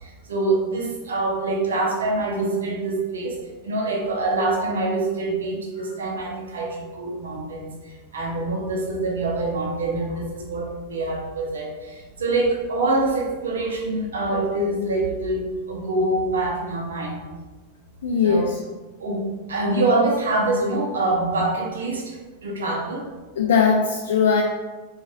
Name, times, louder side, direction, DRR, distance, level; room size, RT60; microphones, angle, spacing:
voice 1, 0.0-3.4 3.6-7.7 8.1-17.2 18.2-18.5 19.0-23.0, right 2 dB, 65° right, -1 dB, 0.7 m, -25 dB
voice 2, 18.0-18.5 23.4-24.4, left 6 dB, 60° left, 1 dB, 0.3 m, -19 dB
4.6 x 2.3 x 2.6 m, 1.2 s
figure-of-eight pair, 90°, 0 cm